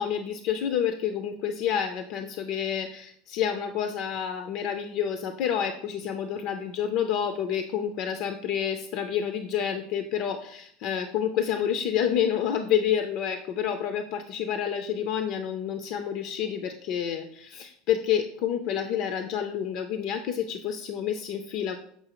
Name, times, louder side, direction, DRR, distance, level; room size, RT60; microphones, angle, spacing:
voice 1, 0.0-21.8, left 9 dB, 50° left, 7 dB, 0.4 m, -29 dB
6.7 x 5.4 x 2.9 m, 0.67 s
supercardioid pair, 165°, 0 cm